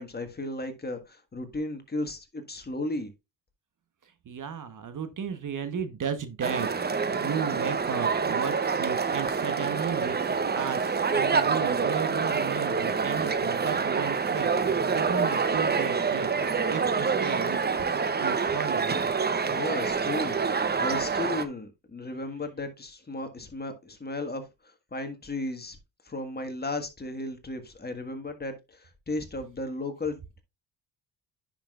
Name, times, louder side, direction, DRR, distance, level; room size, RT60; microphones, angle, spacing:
voice 1, 0.0-3.1 19.4-25.8 26.0-30.4, left 2 dB, 20° left, 1.6 m, -35 dB
voice 2, 4.0-16.3 16.7-17.9 18.2-19.0, right 7 dB, 45° right, 1.1 m, -35 dB
sound 1, 6.4-21.4, right 5 dB, 25° right, 0.8 m, -27 dB
10.0 x 5.9 x 2.4 m
cardioid pair, 95°, 43 cm